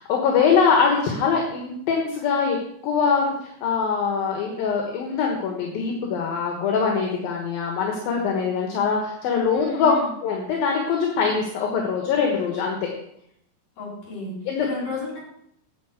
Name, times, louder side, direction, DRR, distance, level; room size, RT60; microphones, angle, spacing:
voice 1, 0.0-2.6 2.8-9.9 10.2-12.9 14.5-14.7, left 6 dB, 70° left, 1 dB, 3.0 m, -23 dB
voice 2, 9.5-10.1 13.8-14.3 14.6-15.2, left 3 dB, 45° left, -3 dB, 4.8 m, -32 dB
9.3 x 5.8 x 7.9 m, 0.72 s
omnidirectional pair, 4.6 m